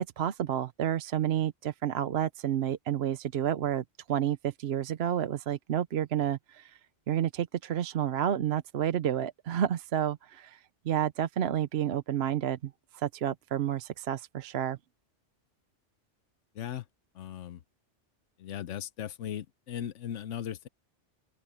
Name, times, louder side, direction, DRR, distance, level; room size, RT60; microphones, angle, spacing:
voice 1, 0.0-6.8 7.1-10.6 10.8-14.8, right 10 dB, 65° right, 0.9 m, -30 dB
voice 2, 17.1-17.6 18.4-20.7, left 10 dB, 90° left, 1.1 m, -38 dB
open air
omnidirectional pair, 1.2 m